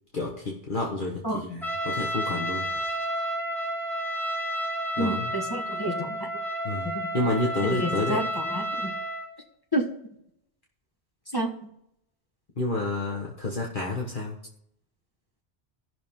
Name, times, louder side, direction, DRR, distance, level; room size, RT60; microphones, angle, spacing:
voice 1, 0.1-2.7 5.0-5.3 6.6-6.9 7.1-8.2 12.6-14.3, left 2 dB, 50° left, -2 dB, 1.5 m, -29 dB
Trumpet, 1.6-9.3, equal, ahead, 2.0 m, -31 dB
voice 2, 5.0-6.3 6.9-7.1 7.7-8.9 9.7-9.9 11.3-11.5, equal, 20° left, 0 dB, 1.4 m, -29 dB
15.0 x 6.2 x 3.6 m, 0.74 s
omnidirectional pair, 1.1 m